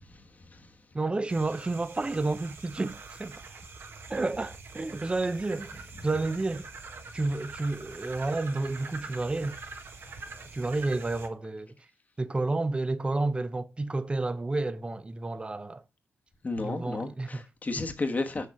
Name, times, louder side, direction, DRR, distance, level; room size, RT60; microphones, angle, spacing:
voice 1, 0.1-0.7 16.4-18.5, left 3 dB, 35° left, 1.3 m, -33 dB
voice 2, 0.9-3.4 4.1-6.7 7.1-9.6 10.5-11.7 12.2-15.8 16.6-17.4 17.8-17.9, right 2 dB, 25° right, 0.7 m, -30 dB
sound 1, 1.3-11.3, right 4 dB, 60° right, 1.4 m, -44 dB
6.7 x 5.9 x 4.7 m
cardioid pair, 70°, 4 cm